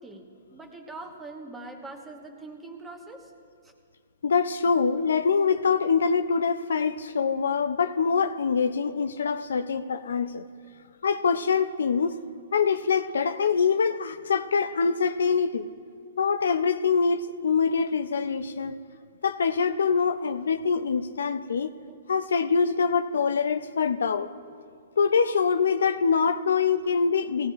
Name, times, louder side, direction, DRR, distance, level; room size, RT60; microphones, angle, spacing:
voice 1, 0.0-3.3 3.6-3.7 21.9-22.0 25.7-26.0 26.8-27.1, right 2 dB, 10° right, 3 dB, 1.2 m, -43 dB
voice 2, 4.2-10.4 11.0-12.1 12.5-15.7 16.2-18.8 19.2-21.7 22.1-24.3 25.0-27.5, left 5 dB, 80° left, 10 dB, 0.5 m, -24 dB
18.0 x 16.0 x 2.5 m, 2.1 s
hypercardioid pair, 145°, 0 cm